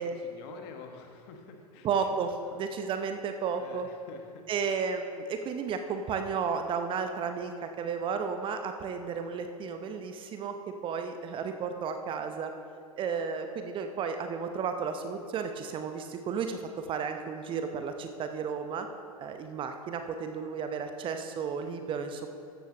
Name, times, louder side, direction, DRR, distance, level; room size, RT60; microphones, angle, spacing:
voice 1, 0.0-2.1 2.5-2.6 3.6-4.5, left 4 dB, 45° left, 4 dB, 1.5 m, -48 dB
voice 2, 1.8-3.9 4.5-10.5 10.8-12.5 13.0-18.9 19.2-22.3, right 6 dB, 25° right, 7 dB, 0.7 m, -33 dB
15.0 x 12.0 x 2.9 m, 2.5 s
figure-of-eight pair, 90°, 20 cm